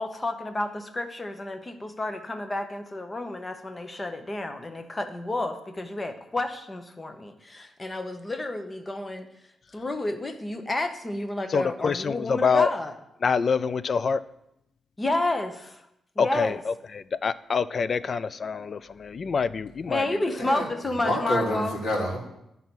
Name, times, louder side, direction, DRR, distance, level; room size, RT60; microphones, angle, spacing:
voice 1, 0.0-9.3 9.7-12.9 15.0-15.8 16.2-16.6 19.9-21.7, left 2 dB, 20° left, 8 dB, 0.9 m, -30 dB
voice 2, 11.5-12.7 13.2-14.2 16.2-20.2, left 5 dB, 45° left, 16 dB, 0.3 m, -26 dB
voice 3, 20.4-22.2, equal, 80° left, -3 dB, 2.6 m, -28 dB
10.0 x 4.1 x 6.1 m, 0.83 s
cardioid pair, 100°, 0 cm